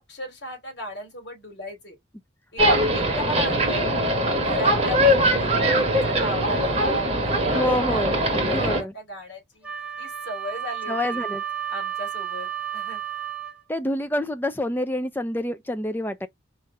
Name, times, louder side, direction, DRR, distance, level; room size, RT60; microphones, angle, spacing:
voice 1, 0.0-2.0 2.5-2.6 2.9-11.2 11.7-13.0, equal, 60° left, 3.1 m, -36 dB
sound 1, 2.6-8.8, equal, 30° right, 1.6 m, -21 dB
voice 2, 7.5-8.9 10.9-11.4 13.7-16.3, left 1 dB, 10° left, 0.5 m, -27 dB
Wind instrument woodwind instrument, 9.6-13.6, right 10 dB, 5° right, 1.1 m, -32 dB
4.7 x 3.3 x 2.6 m
head